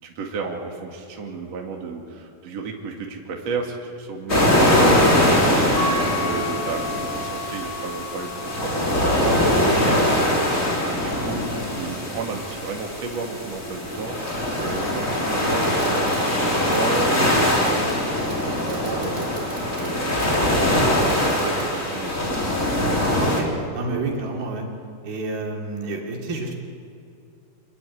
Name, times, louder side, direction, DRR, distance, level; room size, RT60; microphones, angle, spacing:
voice 1, 0.0-5.7 6.1-14.2 14.6-22.3, right 4 dB, 45° right, 1 dB, 3.3 m, -33 dB
sound 1, 4.3-23.4, left 1 dB, 20° left, 3.9 m, -22 dB
sound 2, 5.8-14.0, left 2 dB, 70° left, 9.2 m, -35 dB
Fireworks, 12.1-21.7, right 1 dB, 20° right, 5.0 m, -40 dB
voice 2, 23.1-24.7 25.0-26.6, right 2 dB, 75° right, 0 dB, 4.9 m, -29 dB
27.0 x 22.0 x 9.8 m, 2.6 s
omnidirectional pair, 4.3 m